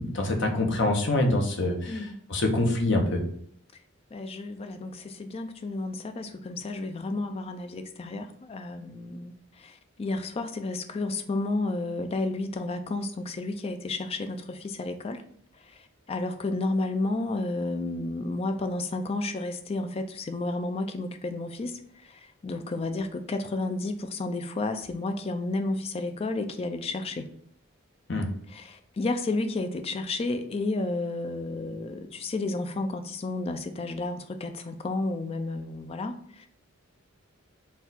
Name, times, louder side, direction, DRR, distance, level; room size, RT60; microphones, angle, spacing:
voice 1, 0.0-2.0 2.3-3.2 28.1-28.3, left 2 dB, 60° left, 2 dB, 0.8 m, -25 dB
voice 2, 1.9-2.2 4.1-15.2 15.6-27.3 28.5-36.5, left 2 dB, 30° left, 8 dB, 0.3 m, -32 dB
4.3 x 2.3 x 3.9 m, 0.63 s
head